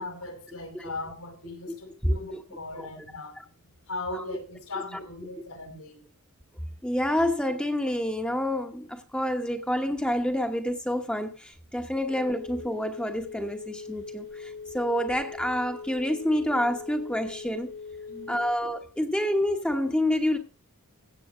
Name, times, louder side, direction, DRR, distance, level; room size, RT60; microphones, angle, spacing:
voice 1, 0.0-3.4 3.9-6.0 11.8-11.9 18.1-18.4, left 2 dB, 85° left, 5.1 m, -38 dB
voice 2, 6.8-17.7 18.3-20.4, left 1 dB, 5° left, 1.0 m, -28 dB
Telephone, 11.5-18.9, left 5 dB, 50° left, 0.6 m, -41 dB
16.5 x 7.1 x 5.0 m
head